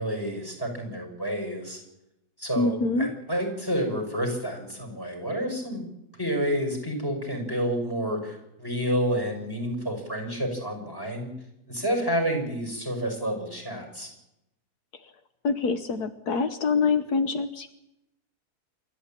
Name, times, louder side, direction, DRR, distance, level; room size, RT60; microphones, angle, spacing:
voice 1, 0.0-1.8 2.4-5.9 6.2-11.3 11.7-14.1, equal, 15° left, 3 dB, 5.9 m, -29 dB
voice 2, 2.6-3.1 15.4-17.7, left 4 dB, 80° left, 10 dB, 1.6 m, -25 dB
27.5 x 13.0 x 8.9 m, 0.87 s
omnidirectional pair, 1.6 m